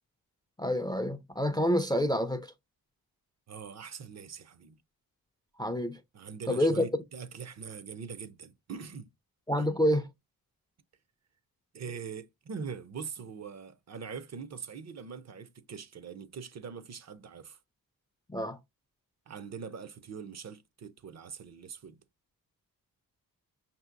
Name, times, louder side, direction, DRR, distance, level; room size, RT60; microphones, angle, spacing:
voice 1, 0.6-2.5 5.6-6.0 6.5-6.8 9.5-10.0 18.3-18.6, equal, 10° left, 0.3 m, -28 dB
voice 2, 3.5-4.8 6.1-9.1 9.6-9.7 11.7-17.6 19.3-22.0, right 6 dB, 45° right, 0.5 m, -42 dB
5.7 x 2.7 x 2.4 m
wide cardioid pair, 140°, 37 cm